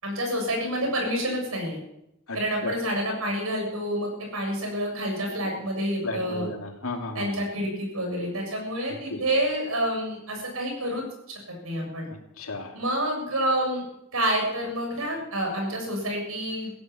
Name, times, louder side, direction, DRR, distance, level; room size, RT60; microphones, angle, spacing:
voice 1, 0.0-1.8 2.3-6.5 7.1-11.0 11.5-12.0 12.7-13.8 14.1-16.7, right 1 dB, 90° right, 1 dB, 7.2 m, -28 dB
voice 2, 2.3-2.8 6.0-7.3 9.1-9.2 12.1-12.8, left 2 dB, 85° left, 3 dB, 2.9 m, -34 dB
15.5 x 11.5 x 7.6 m, 0.83 s
head